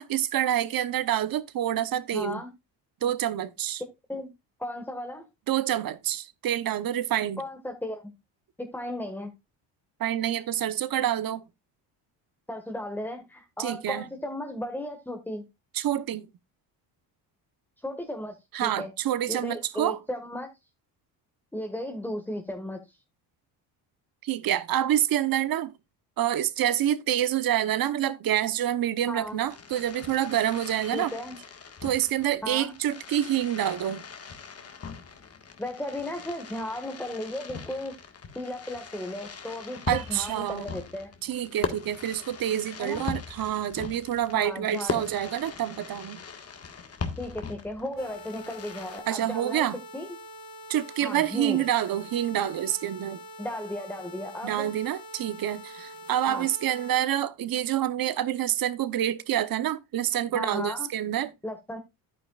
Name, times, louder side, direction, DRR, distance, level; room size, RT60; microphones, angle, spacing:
voice 1, 0.0-2.4 3.0-3.8 5.5-7.4 10.0-11.4 13.6-14.0 15.7-16.3 18.5-20.0 24.2-25.7 26.2-31.1 31.8-34.1 39.9-40.6 41.2-46.2 49.1-49.8 50.7-53.2 54.4-61.3, right 11 dB, 55° right, 1.0 m, -27 dB
voice 2, 2.1-2.5 4.1-4.3 4.6-5.3 7.4-8.1 8.6-9.3 12.5-15.5 17.8-18.9 19.3-20.5 21.5-23.0 29.1-29.4 30.9-31.4 32.4-32.7 35.6-37.9 38.4-41.1 42.8-43.0 44.3-45.1 47.1-49.7 49.9-50.2 51.0-51.6 53.4-54.7 56.3-56.5 60.3-60.9 61.4-61.8, left 1 dB, 5° left, 1.7 m, -35 dB
Fireworks, 29.2-49.0, left 5 dB, 35° left, 1.7 m, -40 dB
sound 1, 48.0-57.0, equal, 50° left, 2.0 m, -45 dB
10.5 x 9.2 x 2.4 m
cardioid pair, 90°, 43 cm